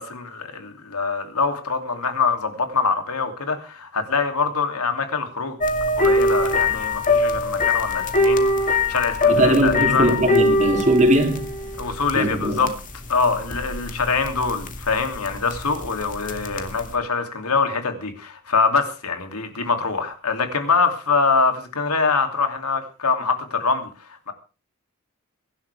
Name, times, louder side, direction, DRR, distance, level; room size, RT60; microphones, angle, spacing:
voice 1, 0.0-5.6 6.0-10.1 11.8-12.7 13.1-24.3, left 4 dB, 85° left, 2.9 m, -24 dB
sound 1, 5.6-16.9, left 2 dB, 35° left, 2.2 m, -23 dB
voice 2, 9.3-11.5 12.1-12.7, right 1 dB, 35° right, 3.0 m, -19 dB
23.5 x 11.5 x 3.5 m
head